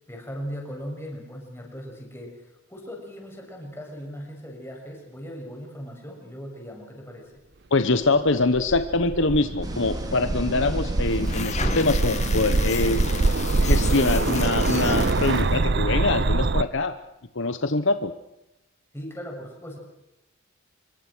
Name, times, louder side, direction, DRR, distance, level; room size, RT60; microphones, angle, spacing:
voice 1, 0.1-7.4 18.9-19.8, equal, 10° left, 0 dB, 7.0 m, -38 dB
voice 2, 7.7-13.0 13.6-17.0 17.3-18.1, left 3 dB, 60° left, 10 dB, 1.1 m, -24 dB
sound 1, 8.3-16.6, right 3 dB, 55° right, 0.8 m, -24 dB
sound 2, 9.6-15.4, equal, 20° right, 3.5 m, -34 dB
sound 3, 11.1-15.6, left 5 dB, 35° left, 2.0 m, -34 dB
26.0 x 23.0 x 6.3 m, 0.87 s
head